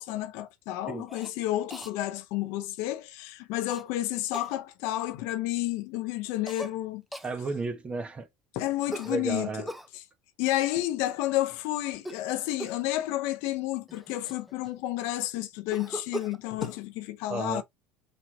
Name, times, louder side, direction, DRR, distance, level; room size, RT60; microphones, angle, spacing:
voice 1, 0.0-7.0 8.5-10.0 10.4-17.6, left 15 dB, 75° left, 0.7 m, -31 dB
Cough, 1.1-1.3 1.7-1.9 3.7-3.8 4.3-4.5 6.5-6.7 7.1-7.3 8.9-9.9 11.9-12.3 12.6-12.9 13.6-13.7 13.9-14.9 15.7-16.8, equal, ahead, 0.7 m, -39 dB
voice 2, 7.2-8.3 9.1-9.7 17.3-17.6, right 3 dB, 25° right, 1.2 m, -32 dB
4.4 x 4.2 x 2.7 m
supercardioid pair, 115°, 5 cm